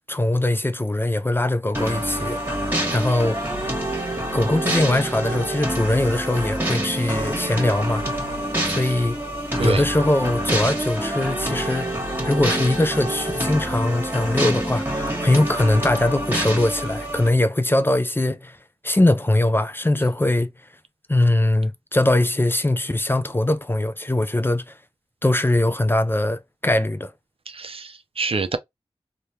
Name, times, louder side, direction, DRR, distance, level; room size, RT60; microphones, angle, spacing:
voice 1, 0.1-2.4 2.9-3.4 4.3-8.1 8.6-9.2 9.6-11.9 12.2-18.6 18.8-20.5 21.1-24.8 25.2-27.1, left 1 dB, 20° left, 0.4 m, -21 dB
sound 1, 1.7-17.3, right 1 dB, 20° right, 1.5 m, -26 dB
voice 2, 27.5-28.6, right 4 dB, 65° right, 0.5 m, -26 dB
3.2 x 2.2 x 2.7 m
wide cardioid pair, 45°, 11 cm